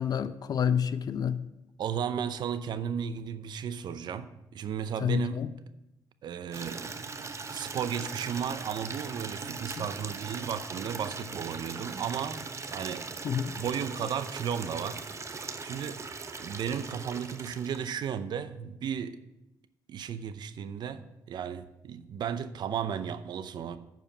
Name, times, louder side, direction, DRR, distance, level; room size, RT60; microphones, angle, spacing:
voice 1, 0.0-1.4 5.0-5.5 9.8-9.9 13.2-13.5, left 8 dB, 55° left, 13 dB, 0.6 m, -28 dB
voice 2, 1.8-5.4 6.2-7.0 7.5-13.1 13.6-16.0 16.4-19.2 19.9-23.8, right 8 dB, 70° right, 12 dB, 0.6 m, -34 dB
Water tap faucet / Liquid, 6.5-18.1, right 4 dB, 40° right, 0.9 m, -40 dB
9.0 x 5.1 x 6.8 m, 0.90 s
cardioid pair, 70°, 8 cm